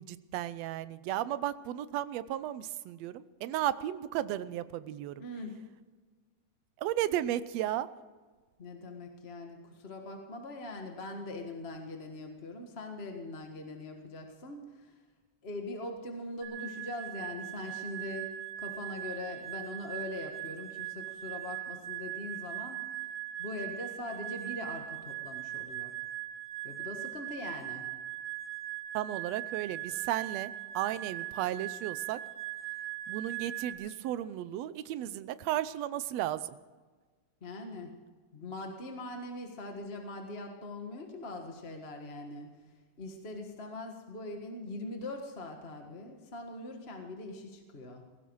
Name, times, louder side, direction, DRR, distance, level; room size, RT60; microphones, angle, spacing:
voice 1, 0.0-5.2 6.8-7.9 28.9-32.2 33.1-36.6, right 12 dB, 75° right, 15 dB, 1.8 m, -34 dB
voice 2, 5.2-5.6 8.6-14.9 15.4-18.3 18.6-23.0 23.4-25.9 26.6-27.9 37.4-37.9 38.3-42.5 43.0-48.0, left 2 dB, 30° left, 3 dB, 1.3 m, -42 dB
sound 1, 16.4-33.7, right 14 dB, 55° right, 3.3 m, -40 dB
18.5 x 16.0 x 4.7 m, 1.4 s
omnidirectional pair, 3.3 m